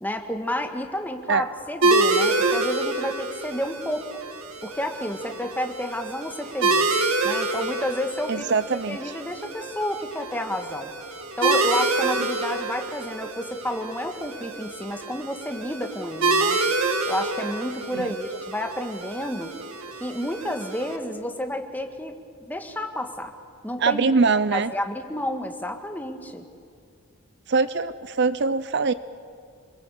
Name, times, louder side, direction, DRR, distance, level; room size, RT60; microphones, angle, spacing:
voice 1, 0.0-4.1 4.6-6.9 7.2-8.5 8.9-10.9 11.4-16.6 17.1-19.5 20.0-22.1 22.5-23.3 23.6-24.1 24.5-26.5, left 1 dB, 10° left, 4 dB, 1.6 m, -30 dB
sound 1, 1.8-21.0, right 3 dB, 80° right, 2.1 m, -27 dB
voice 2, 8.3-9.1 17.9-18.1 23.8-24.7 27.5-28.9, right 4 dB, 55° right, 14 dB, 0.6 m, -23 dB
27.5 x 21.5 x 8.3 m, 2.2 s
head